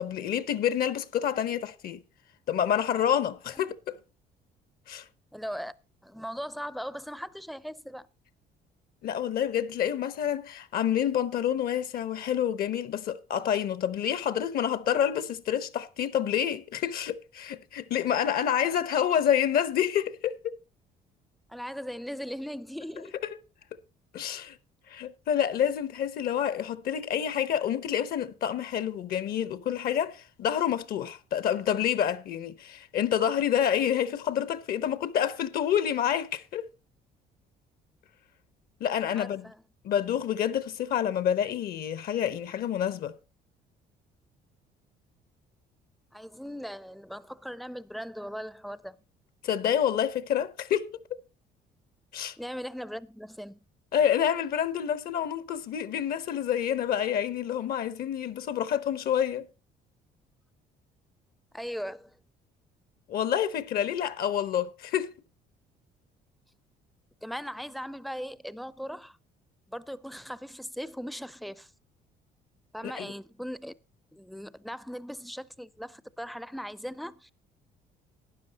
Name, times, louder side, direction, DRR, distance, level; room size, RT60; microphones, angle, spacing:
voice 1, 0.0-2.0 2.5-4.0 4.9-5.0 9.0-20.6 24.1-24.6 24.9-36.7 38.8-39.5 39.8-43.1 49.4-50.9 52.1-52.3 53.9-59.5 63.1-65.1 72.8-73.1, left 9 dB, 60° left, 0.9 m, -28 dB
voice 2, 5.3-5.7 6.0-8.1 18.6-18.7 21.5-23.2 39.2-39.6 46.1-49.0 52.4-53.6 61.5-62.2 67.2-69.2 69.7-71.7 72.7-73.7 74.1-77.3, equal, ahead, 0.5 m, -39 dB
12.5 x 9.8 x 4.1 m
cardioid pair, 110°, 17 cm